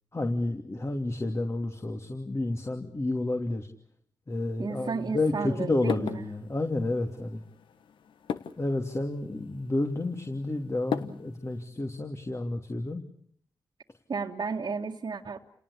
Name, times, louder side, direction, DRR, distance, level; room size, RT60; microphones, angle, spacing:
voice 1, 0.1-3.7 4.3-7.4 8.6-13.0, left 2 dB, 35° left, 5 dB, 2.9 m, -30 dB
sound 1, 4.3-11.7, left 7 dB, 80° left, 1.4 m, -40 dB
voice 2, 4.6-6.3 14.1-15.4, right 4 dB, 60° right, 1 dB, 1.9 m, -33 dB
30.0 x 18.5 x 8.6 m, 0.66 s
supercardioid pair, 40°, 8 cm